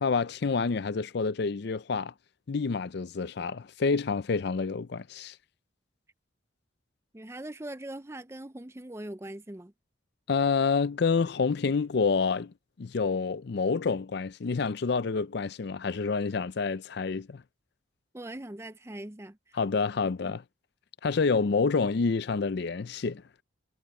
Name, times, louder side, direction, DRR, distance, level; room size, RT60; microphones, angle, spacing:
voice 1, 0.0-2.1 2.5-5.4 10.3-12.5 12.8-17.4 19.5-20.4 21.0-23.2, left 4 dB, 55° left, 0.5 m, -28 dB
voice 2, 7.1-9.7 18.1-19.4, right 1 dB, 15° right, 0.6 m, -41 dB
head